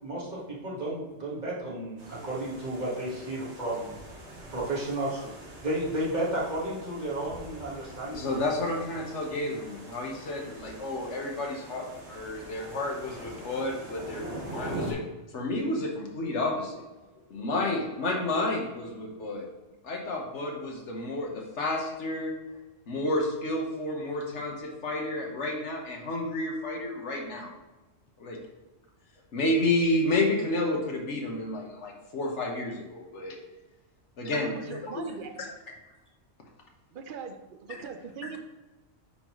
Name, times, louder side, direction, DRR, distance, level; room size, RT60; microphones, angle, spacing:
voice 1, 0.0-4.0 4.5-8.7, right 1 dB, 40° right, -6 dB, 1.8 m, -33 dB
sound 1, 2.0-14.9, right 1 dB, 75° right, 1.7 m, -43 dB
voice 2, 8.1-15.0 15.3-16.8 17.3-19.4 19.8-22.3 22.9-27.5 28.2-28.4 29.3-33.4 34.2-35.1, left 2 dB, 85° left, 0 dB, 1.4 m, -30 dB
voice 3, 34.2-35.6 36.9-38.4, right 6 dB, 55° right, 6 dB, 0.7 m, -41 dB
9.5 x 3.9 x 3.1 m, 1.1 s
omnidirectional pair, 1.2 m